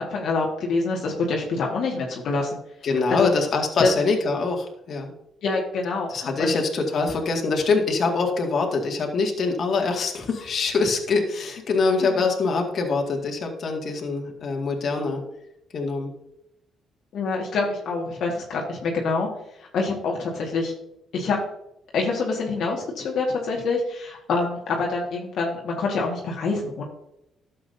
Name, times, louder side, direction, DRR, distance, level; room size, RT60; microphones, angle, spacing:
voice 1, 0.0-2.5 3.1-3.3 3.8-3.9 5.4-6.5 12.0-12.1 17.1-19.3 19.7-20.7 21.1-21.4 21.9-26.8, left 3 dB, 70° left, -1 dB, 1.7 m, -26 dB
voice 2, 2.8-5.1 6.1-15.2 15.7-16.1, left 4 dB, 55° left, 2 dB, 2.1 m, -24 dB
12.0 x 7.7 x 2.7 m, 0.82 s
cardioid pair, 90°, 0 cm